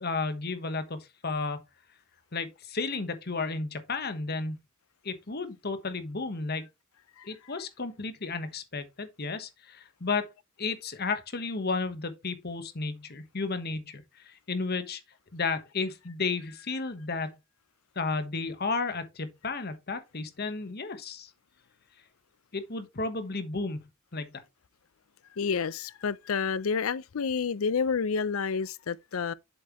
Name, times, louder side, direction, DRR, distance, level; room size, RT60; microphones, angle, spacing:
voice 1, 0.0-1.6 2.3-4.6 5.0-6.7 7.2-10.3 10.6-15.0 15.3-17.3 17.9-21.3 22.5-23.8 24.1-24.3, left 4 dB, 50° left, 1.3 m, -33 dB
voice 2, 25.4-29.3, left 5 dB, 80° left, 0.5 m, -29 dB
7.7 x 7.1 x 3.1 m
head